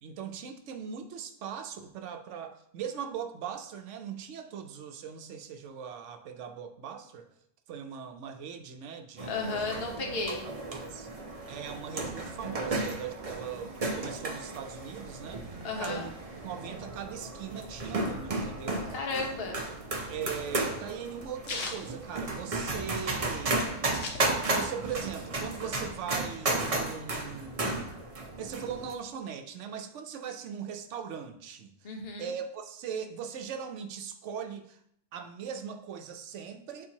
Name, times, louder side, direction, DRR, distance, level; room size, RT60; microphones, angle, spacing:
voice 1, 0.0-7.3 7.7-9.7 10.3-11.1 11.5-15.4 15.8-16.1 16.4-18.8 20.1-23.6 24.5-27.9 28.4-31.7 32.2-34.8 35.1-36.9, right 7 dB, 70° right, 6 dB, 1.0 m, -40 dB
sound 1, 9.2-28.9, right 2 dB, 35° right, 0.7 m, -34 dB
voice 2, 9.3-10.4 15.6-16.1 18.9-19.6 31.8-32.3, left 3 dB, 50° left, 1 dB, 1.2 m, -34 dB
sound 2, 19.7-22.9 23.2-23.3 23.5-24.8 25.1-26.3, left 3 dB, 75° left, 1.3 m, -40 dB
7.9 x 4.4 x 2.8 m, 0.69 s
omnidirectional pair, 1.3 m